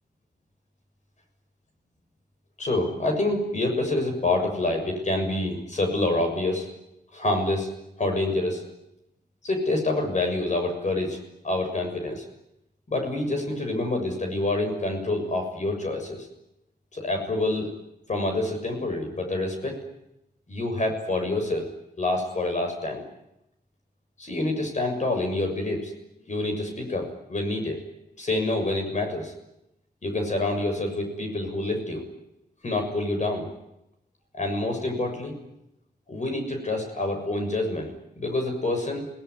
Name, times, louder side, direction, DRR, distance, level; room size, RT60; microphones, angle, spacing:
voice 1, 2.6-6.7 7.1-7.7 8.0-8.6 9.4-11.2 11.4-12.2 12.9-16.3 16.9-17.7 18.1-19.8 20.5-21.7 22.0-23.0 24.2-25.9 26.3-27.8 28.2-29.3 30.0-32.0 32.6-33.5 34.3-35.4 36.1-39.1, left 2 dB, 45° left, 3 dB, 6.7 m, -27 dB
27.5 x 19.0 x 9.8 m, 0.86 s
wide cardioid pair, 115°, 16 cm